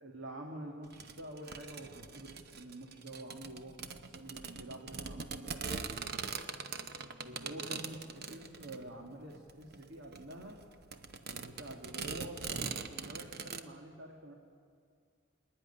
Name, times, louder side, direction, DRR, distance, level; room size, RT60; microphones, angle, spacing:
voice 1, 0.0-6.4 7.3-10.6 11.3-14.3, right 1 dB, 75° right, 0 dB, 1.9 m, -48 dB
sound 1, 0.9-13.6, right 5 dB, 55° right, 0.9 m, -42 dB
26.5 x 10.0 x 9.8 m, 2.2 s
head